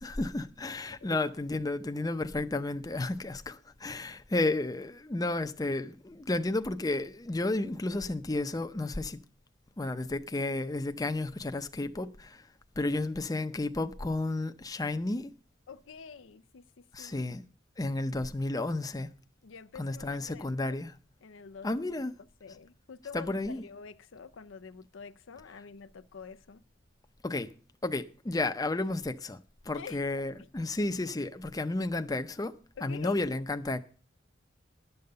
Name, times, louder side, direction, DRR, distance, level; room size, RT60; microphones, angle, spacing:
voice 1, 0.0-9.2 9.8-12.5 12.8-15.3 16.9-17.4 17.8-19.1 19.8-20.9 21.6-22.2 23.1-23.6 27.2-27.5 27.8-32.5 32.8-33.8, left 2 dB, 20° left, 0.6 m, -32 dB
voice 2, 15.7-17.2 19.4-20.8 21.2-21.7 22.4-26.6 29.7-30.5 32.8-33.2, left 5 dB, 80° left, 0.5 m, -48 dB
11.5 x 6.9 x 6.6 m
head